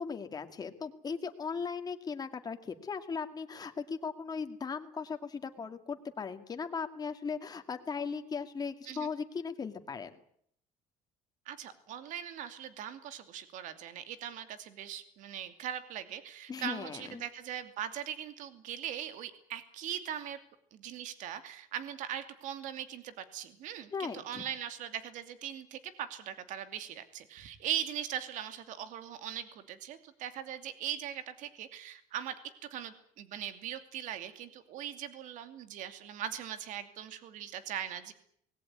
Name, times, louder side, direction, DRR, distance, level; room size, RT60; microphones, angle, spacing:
voice 1, 0.0-10.2 16.5-17.2 23.9-24.4, left 5 dB, 30° left, 7 dB, 2.4 m, -38 dB
voice 2, 11.5-20.4 20.7-32.4 32.7-38.1, right 10 dB, 70° right, 10 dB, 2.6 m, -40 dB
20.5 x 17.5 x 9.6 m, 0.66 s
cardioid pair, 120°, 14 cm